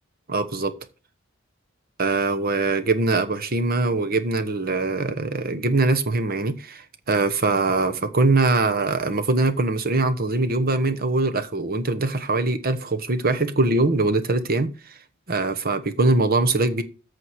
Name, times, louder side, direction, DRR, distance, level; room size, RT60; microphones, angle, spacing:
voice 1, 0.3-0.7 2.0-14.7 15.3-16.8, right 3 dB, 50° right, 1.2 m, -22 dB
14.0 x 4.9 x 4.8 m
head